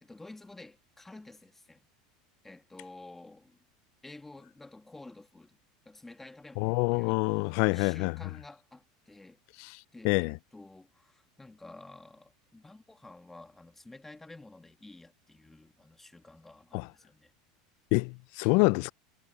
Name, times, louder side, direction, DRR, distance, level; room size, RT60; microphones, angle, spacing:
voice 1, 0.0-1.9 2.4-3.6 4.0-5.6 5.9-9.4 9.9-17.3, left 2 dB, 10° left, 2.3 m, -51 dB
voice 2, 6.6-8.1 10.0-10.4 16.7-16.9 17.9-18.9, left 28 dB, 65° left, 0.4 m, -26 dB
supercardioid pair, 110°, 3 cm